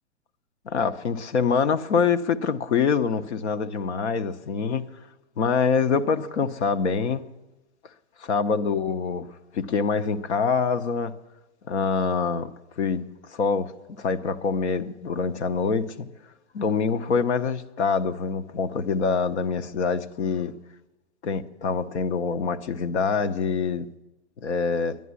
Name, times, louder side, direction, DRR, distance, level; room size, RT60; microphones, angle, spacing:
voice 1, 0.7-4.9 5.4-7.2 8.2-9.3 9.5-11.1 11.7-12.5 12.8-13.0 13.3-13.7 14.0-16.1 16.5-20.5 21.2-23.9 24.4-25.0, left 5 dB, 65° left, 0.9 m, -25 dB
11.0 x 11.0 x 9.6 m
hypercardioid pair, 175°, 37 cm